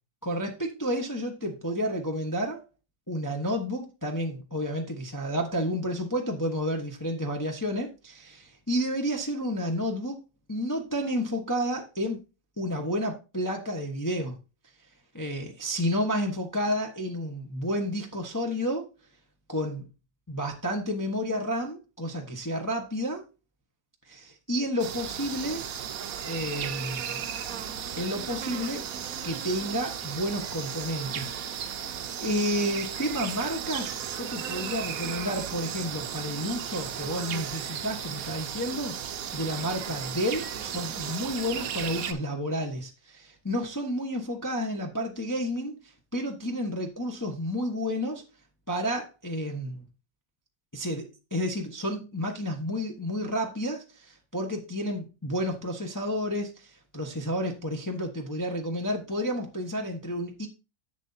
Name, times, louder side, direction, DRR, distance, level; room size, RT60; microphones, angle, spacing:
voice 1, 0.2-2.6 3.1-10.2 10.5-12.2 12.6-14.4 15.1-18.9 19.5-19.8 20.3-23.2 24.1-25.7 26.2-27.2 28.0-28.8 29.2-31.8 32.2-38.9 39.3-48.2 48.7-49.8 50.7-60.5, equal, 15° left, 0.8 m, -31 dB
sound 1, 24.8-42.1, right 8 dB, 60° right, 1.0 m, -35 dB
11.0 x 7.3 x 2.7 m
omnidirectional pair, 2.1 m